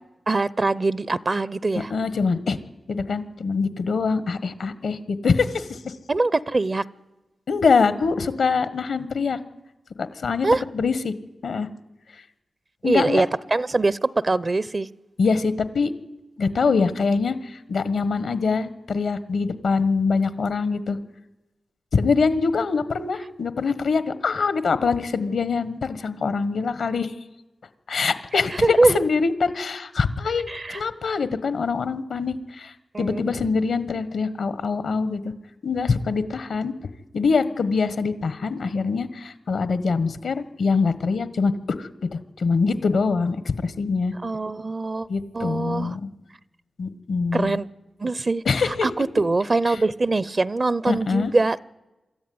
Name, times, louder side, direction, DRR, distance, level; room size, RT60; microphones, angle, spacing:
voice 1, 0.3-1.9 6.1-6.8 10.4-10.6 12.8-14.9 28.5-29.0 30.5-30.8 32.9-33.5 44.2-45.1 45.3-46.0 47.3-47.7 48.0-51.6, right 3 dB, 45° right, 0.6 m, -23 dB
voice 2, 1.9-2.6 2.9-5.9 7.5-9.4 10.0-10.5 10.7-11.1 11.4-11.7 12.8-13.2 15.2-15.9 16.4-21.0 21.9-27.1 27.9-35.3 35.6-36.7 37.1-41.5 41.8-44.1 45.1-46.1 46.8-47.6 48.4-48.9 50.9-51.3, left 4 dB, 80° left, 1.3 m, -24 dB
24.0 x 13.5 x 9.5 m
cardioid pair, 50°, 0 cm